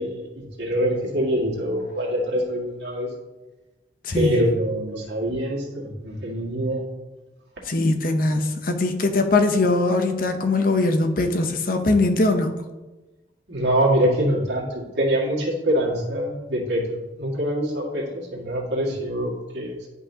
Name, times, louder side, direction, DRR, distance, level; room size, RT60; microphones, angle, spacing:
voice 1, 0.0-3.1 4.1-6.8 13.5-19.9, equal, 80° right, -3 dB, 1.8 m, -24 dB
voice 2, 4.0-4.4 7.7-12.5, left 2 dB, 50° left, 6 dB, 0.7 m, -21 dB
10.5 x 5.5 x 2.8 m, 1.1 s
head